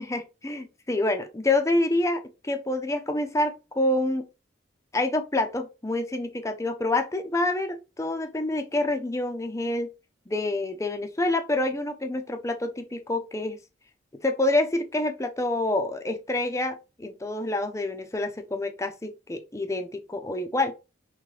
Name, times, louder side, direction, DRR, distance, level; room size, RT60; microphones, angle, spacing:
voice 1, 0.0-4.2 4.9-9.9 10.3-13.6 14.2-20.7, left 2 dB, 15° left, 0.5 m, -27 dB
3.8 x 3.2 x 3.1 m
head